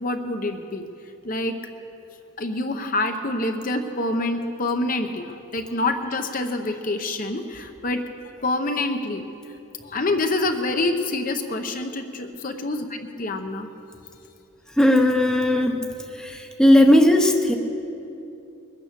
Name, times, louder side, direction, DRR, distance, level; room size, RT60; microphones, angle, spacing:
voice 1, 0.0-0.9 1.2-1.6 2.4-8.0 8.4-9.3 9.8-12.9 13.2-13.7, left 2 dB, 40° left, 6 dB, 0.8 m, -26 dB
voice 2, 14.8-15.8 16.1-17.5, left 1 dB, 5° left, 3 dB, 0.8 m, -17 dB
22.0 x 9.1 x 6.7 m, 2.8 s
head